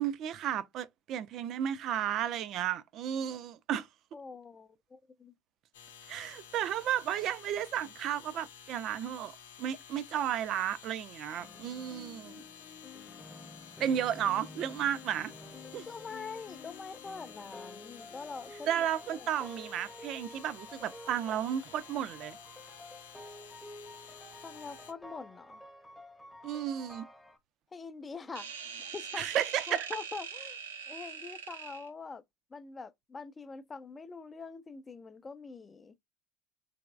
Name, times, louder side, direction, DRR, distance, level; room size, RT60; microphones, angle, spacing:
voice 1, 0.0-3.9 6.1-9.3 9.6-12.4 13.8-15.3 15.7-15.8 18.6-22.4 26.4-27.1 29.2-29.9, right 10 dB, 55° right, 0.5 m, -33 dB
voice 2, 4.1-5.3 15.9-18.8 19.1-19.5 24.4-25.6 27.7-28.5 28.8-29.3 29.7-30.6 30.9-32.2 32.5-36.0, left 4 dB, 25° left, 0.4 m, -44 dB
sound 1, 5.7-24.9, left 8 dB, 85° left, 0.7 m, -52 dB
sound 2, 11.4-27.4, left 2 dB, 10° left, 0.8 m, -50 dB
sound 3, 28.4-31.9, right 6 dB, 90° right, 0.7 m, -42 dB
3.4 x 3.0 x 2.4 m
hypercardioid pair, 80°, 0 cm